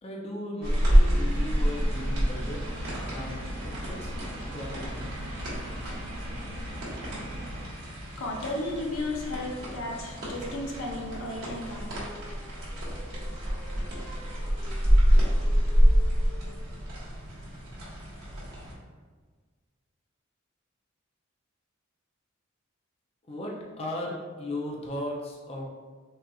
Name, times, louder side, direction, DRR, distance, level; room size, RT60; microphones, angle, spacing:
voice 1, 0.0-2.6 3.0-4.1 4.5-5.1 23.3-25.7, left 1 dB, 30° left, -2 dB, 0.4 m, -36 dB
sound 1, 0.6-18.7, equal, 55° right, 1.2 m, -27 dB
sound 2, 1.1-7.7, equal, 75° right, 0.5 m, -39 dB
voice 2, 8.0-12.1, left 2 dB, 80° left, 0 dB, 0.6 m, -34 dB
Singing, 11.5-16.7, left 3 dB, 15° right, 0.7 m, -49 dB
4.2 x 2.4 x 2.3 m, 1.5 s
head